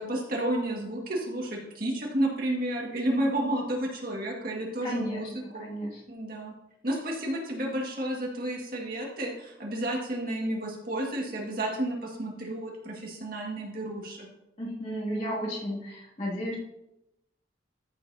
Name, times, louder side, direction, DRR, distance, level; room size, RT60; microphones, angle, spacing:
voice 1, 0.0-5.3 5.5-5.7 6.1-6.5 6.8-14.3, right 1 dB, 50° right, -1 dB, 1.9 m, -31 dB
voice 2, 4.8-5.3 5.6-6.0 14.6-16.6, equal, 40° left, -5 dB, 2.5 m, -33 dB
14.0 x 6.9 x 2.8 m, 0.88 s
head